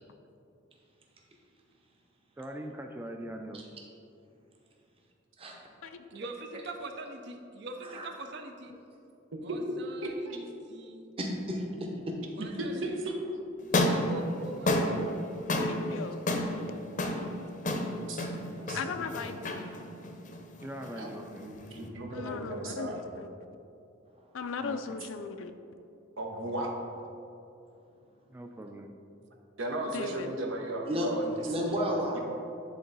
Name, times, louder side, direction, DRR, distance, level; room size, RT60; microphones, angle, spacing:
voice 1, 2.4-3.7 20.6-21.5 22.6-23.1 24.6-25.0 28.3-29.0, right 1 dB, 10° right, 3 dB, 0.3 m, -42 dB
voice 2, 6.1-8.7 9.4-11.1 12.3-13.0 13.7-15.4, right 2 dB, 60° right, 5 dB, 0.6 m, -43 dB
voice 3, 10.0-10.4 12.4-13.4 17.9-19.0 20.9-21.1 21.4-23.1 26.2-26.7 29.6-31.6 32.1-32.2, right 1 dB, 85° right, 1 dB, 1.0 m, -36 dB
voice 4, 11.2-12.2 30.9-31.1 31.5-32.2, equal, 30° right, -1 dB, 0.9 m, -32 dB
sound 1, 13.6-21.9, left 1 dB, 40° left, 0.6 m, -32 dB
voice 5, 15.6-16.2 18.7-19.7 22.1-23.3 24.3-25.5 29.9-30.3, left 5 dB, 90° left, 8 dB, 0.4 m, -37 dB
10.0 x 3.7 x 4.0 m, 2.7 s
head